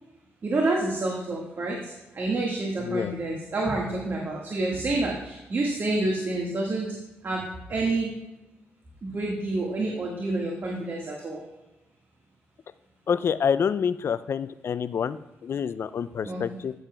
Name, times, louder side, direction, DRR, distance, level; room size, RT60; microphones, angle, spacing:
voice 1, 0.4-6.9 7.2-7.4 7.7-8.1 9.0-11.4 16.2-16.4, right 2 dB, 50° right, -2 dB, 1.7 m, -28 dB
voice 2, 13.1-16.7, left 7 dB, 60° left, 15 dB, 0.4 m, -27 dB
13.5 x 6.8 x 2.3 m, 0.99 s
supercardioid pair, 60°, 5 cm